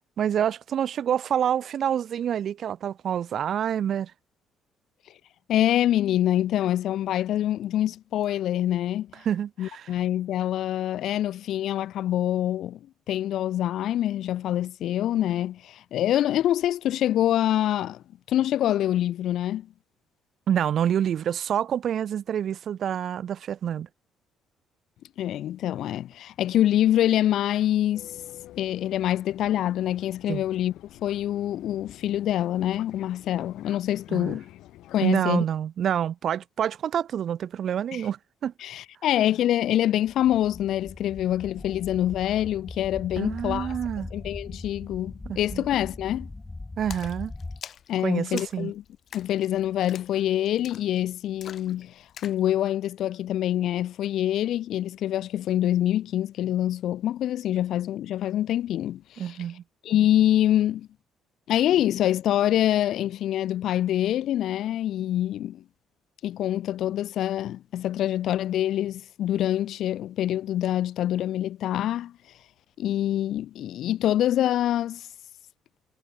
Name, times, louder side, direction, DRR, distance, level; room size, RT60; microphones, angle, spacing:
voice 1, 0.2-4.1 9.3-9.9 20.5-23.9 30.3-30.4 34.1-34.4 35.0-38.5 43.2-44.1 45.3-45.7 46.8-47.3 48.0-48.7 59.2-59.6, right 9 dB, 50° right, 2.0 m, -27 dB
voice 2, 5.5-9.1 9.6-12.8 13.1-19.7 25.2-28.1 28.6-30.7 31.0-34.5 34.9-35.4 37.9-38.0 38.6-46.3 47.9-48.8 49.1-51.9 52.2-59.4 59.8-60.9 61.5-65.6 66.2-72.1 72.8-75.1, left 12 dB, 65° left, 1.8 m, -25 dB
Fixed-wing aircraft airplane, 27.9-35.0, left 15 dB, 85° left, 2.7 m, -49 dB
sound 1, 40.1-47.6, left 2 dB, 15° left, 1.4 m, -40 dB
Splash splatter, 46.9-52.4, left 9 dB, 50° left, 3.4 m, -45 dB
cardioid pair, 145°, 0 cm